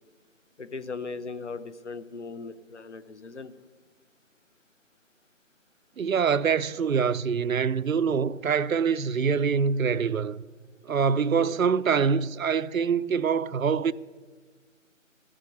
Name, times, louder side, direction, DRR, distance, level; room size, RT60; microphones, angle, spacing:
voice 1, 0.6-3.5 11.4-11.6, left 4 dB, 60° left, 0.9 m, -38 dB
voice 2, 6.0-10.4 10.8-13.9, right 6 dB, 80° right, 0.6 m, -25 dB
13.5 x 7.5 x 9.2 m
figure-of-eight pair, 165°, 40 cm